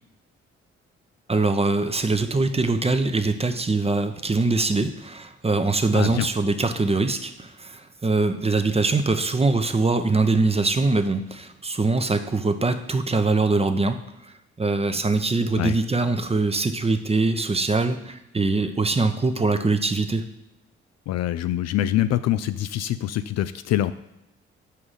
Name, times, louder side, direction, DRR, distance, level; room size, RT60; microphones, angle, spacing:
voice 1, 1.3-14.0 14.6-20.3, right 3 dB, 20° right, 9 dB, 0.8 m, -23 dB
voice 2, 5.9-6.3 15.6-15.8 21.1-23.9, left 12 dB, 55° left, 13 dB, 0.4 m, -24 dB
5.7 x 4.9 x 6.5 m, 0.90 s
hypercardioid pair, 40°, 32 cm